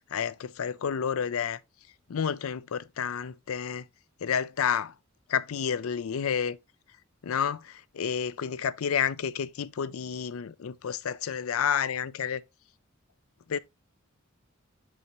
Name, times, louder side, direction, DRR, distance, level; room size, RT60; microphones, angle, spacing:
voice 1, 0.1-1.6 2.1-3.8 4.2-4.9 5.3-6.6 7.2-12.4 13.5-13.6, left 7 dB, 75° left, 0.5 m, -30 dB
6.3 x 5.5 x 2.9 m
head